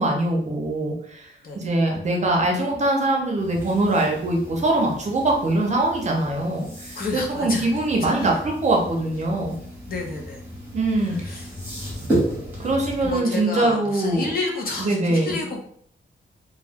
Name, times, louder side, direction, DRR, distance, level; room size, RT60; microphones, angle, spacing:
voice 1, 0.0-9.6 10.7-11.4 12.6-14.3 14.8-15.4, right 2 dB, 35° right, 0 dB, 0.6 m, -23 dB
sound 1, 3.3-13.2, right 1 dB, 10° right, 1.1 m, -33 dB
voice 2, 7.0-7.7 8.0-8.3 9.9-10.4 11.2-11.5 13.0-15.6, left 3 dB, 45° left, 0 dB, 0.6 m, -30 dB
2.2 x 2.2 x 3.4 m, 0.64 s
wide cardioid pair, 155°, 21 cm